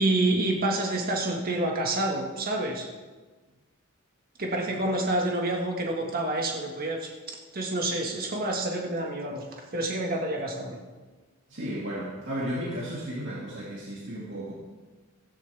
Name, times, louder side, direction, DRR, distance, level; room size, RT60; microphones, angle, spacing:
voice 1, 0.0-2.9 4.4-9.4 9.7-10.8, right 2 dB, 45° right, 0 dB, 1.8 m, -28 dB
voice 2, 11.5-14.5, equal, 60° right, -5 dB, 2.5 m, -34 dB
16.5 x 16.0 x 3.5 m, 1.3 s
head